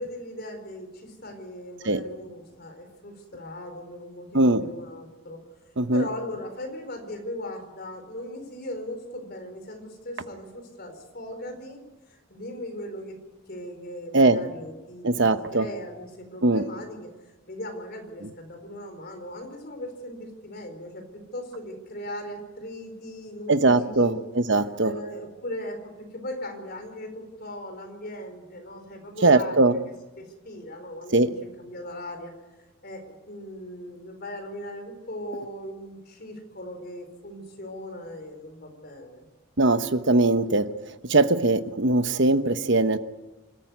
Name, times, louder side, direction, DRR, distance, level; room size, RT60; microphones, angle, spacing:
voice 1, 0.0-11.8 12.1-13.2 13.5-15.1 15.4-17.2 17.5-24.2 24.8-29.8 30.2-32.3 32.8-39.2, left 1 dB, 45° left, 5 dB, 4.4 m, -38 dB
voice 2, 4.3-4.7 5.8-6.1 14.1-14.4 15.0-15.7 16.4-16.7 23.5-24.9 29.2-29.8 31.1-31.3 39.6-43.0, right 2 dB, 60° right, 10 dB, 1.0 m, -21 dB
27.0 x 13.5 x 9.5 m, 1.1 s
head